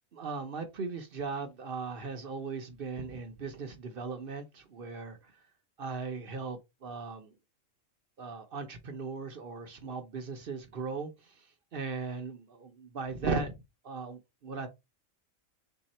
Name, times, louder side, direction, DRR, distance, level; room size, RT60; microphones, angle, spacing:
voice 1, 0.1-5.2 5.8-7.3 8.2-11.1 11.7-13.6 13.8-14.7, right 4 dB, 55° right, 0.8 m, -37 dB
3.5 x 2.8 x 4.1 m
omnidirectional pair, 1.3 m